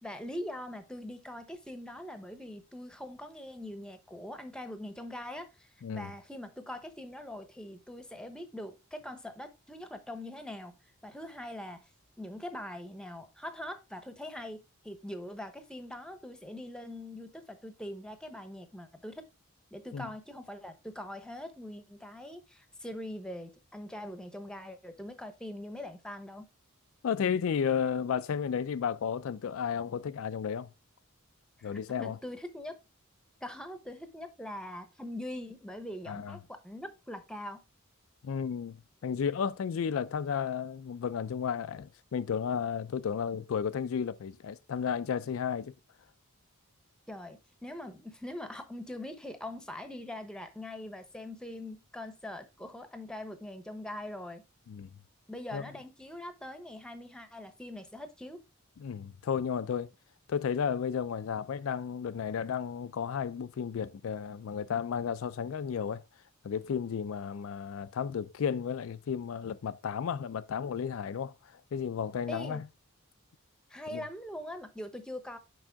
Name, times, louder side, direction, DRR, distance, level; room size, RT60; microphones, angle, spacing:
voice 1, 0.0-10.8 11.0-11.9 12.2-19.2 19.7-26.5 31.6-32.8 33.4-37.6 47.1-54.4 55.3-58.4 72.3-72.6 73.7-75.4, left 1 dB, 5° left, 0.8 m, -42 dB
voice 2, 27.0-30.7 31.6-32.2 36.1-36.4 38.2-38.8 39.0-45.7 54.7-54.9 55.5-55.6 58.8-59.9 60.3-66.0 66.4-72.7 73.9-74.0, left 7 dB, 70° left, 0.4 m, -33 dB
6.1 x 5.4 x 3.4 m
head